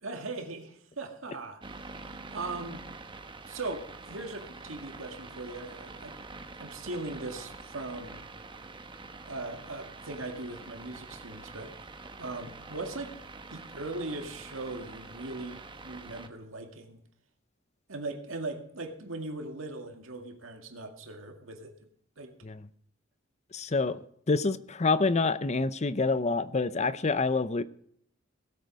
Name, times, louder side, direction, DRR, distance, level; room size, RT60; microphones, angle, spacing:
voice 1, 0.0-1.6 2.0-2.8 3.5-6.2 6.6-8.2 9.3-11.7 12.2-13.2 13.5-17.0 17.9-21.7 22.2-22.3, right 2 dB, 90° right, 2.0 m, -39 dB
sound 1, 1.6-16.3, right 3 dB, 25° right, 1.1 m, -46 dB
voice 2, 23.5-27.6, left 3 dB, 35° left, 0.6 m, -27 dB
17.5 x 8.2 x 5.3 m
head